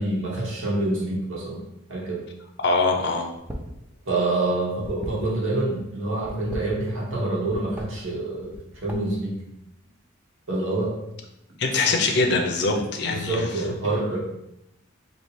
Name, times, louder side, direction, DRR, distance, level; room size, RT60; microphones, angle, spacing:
voice 1, 0.0-1.6 1.9-2.2 4.0-8.6 8.8-9.4 10.5-11.0 11.7-12.0 13.1-14.2, right 2 dB, 70° right, -4 dB, 1.3 m, -26 dB
voice 2, 2.6-3.3 11.6-13.5, left 3 dB, 55° left, 3 dB, 0.6 m, -23 dB
sound 1, 3.4-3.8 4.1-5.7 6.2-7.2 7.5-7.9 8.4-9.2, equal, 5° right, 0.4 m, -37 dB
3.2 x 2.8 x 4.2 m, 0.85 s
head